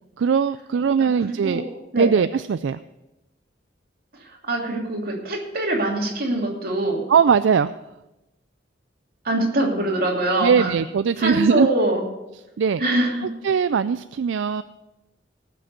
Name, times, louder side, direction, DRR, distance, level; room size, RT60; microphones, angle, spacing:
voice 1, 0.2-1.6 2.0-2.8 7.1-7.8 10.4-11.7 12.6-12.8 13.4-14.6, right 6 dB, 75° right, 13 dB, 0.4 m, -20 dB
voice 2, 1.2-1.7 1.9-2.1 4.1-7.1 9.2-10.7 11.2-12.0 12.8-13.3, right 1 dB, 55° right, -1 dB, 2.9 m, -23 dB
18.0 x 6.3 x 6.7 m, 0.98 s
head